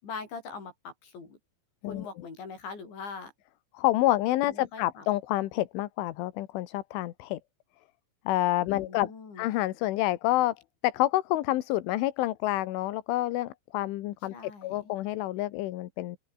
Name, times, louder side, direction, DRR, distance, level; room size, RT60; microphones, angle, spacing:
voice 1, 0.0-1.4 1.8-3.3 4.5-5.1 8.7-9.5 14.3-14.9, left 5 dB, 70° left, 9.8 m, -42 dB
voice 2, 3.7-7.4 8.3-9.1 9.4-10.6 10.8-16.2, left 16 dB, 85° left, 3.7 m, -28 dB
open air
omnidirectional pair, 5.4 m